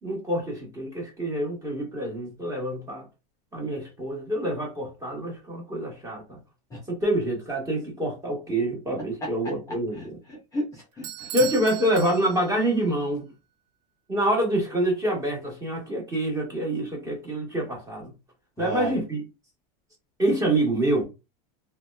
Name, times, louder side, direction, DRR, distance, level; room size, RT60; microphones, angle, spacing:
voice 1, 0.0-3.1 3.5-6.4 6.9-10.2 11.3-13.3 14.1-18.1 18.6-19.2 20.2-21.0, right 1 dB, 15° right, 1.2 m, -26 dB
voice 2, 9.2-9.5 10.0-11.3 18.6-19.0, equal, 15° left, 0.6 m, -33 dB
Bell / Doorbell, 11.0-12.7, right 11 dB, 65° right, 0.4 m, -37 dB
2.8 x 2.1 x 2.2 m
supercardioid pair, 135°, 21 cm